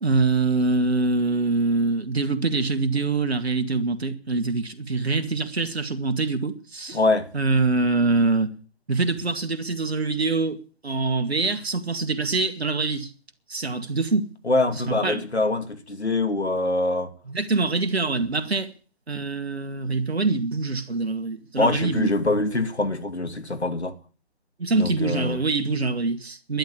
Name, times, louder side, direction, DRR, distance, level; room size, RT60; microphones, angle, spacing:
voice 1, 0.0-7.0 7.3-8.5 8.9-10.6 10.8-13.1 13.5-14.3 14.9-15.2 17.3-18.7 19.1-22.1 24.6-26.6, right 3 dB, 70° right, 2.2 m, -24 dB
voice 2, 6.9-7.3 14.4-17.1 21.6-23.9 24.7-25.4, left 2 dB, 80° left, 2.6 m, -24 dB
11.5 x 11.0 x 8.7 m
figure-of-eight pair, 140°, 33 cm